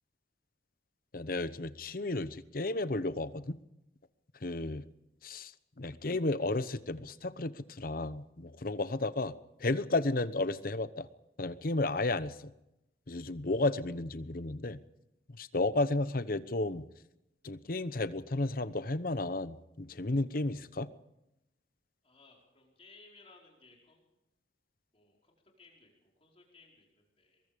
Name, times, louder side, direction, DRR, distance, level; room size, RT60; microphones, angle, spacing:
voice 1, 1.1-3.6 4.4-4.8 5.2-5.5 5.8-9.3 9.6-11.1 11.4-12.5 13.1-14.8 15.3-16.8 17.4-20.9, left 2 dB, 50° left, 14 dB, 0.9 m, -33 dB
voice 2, 22.0-24.0 24.9-27.4, left 3 dB, 35° left, -1 dB, 4.8 m, -60 dB
23.0 x 21.5 x 5.2 m, 0.88 s
head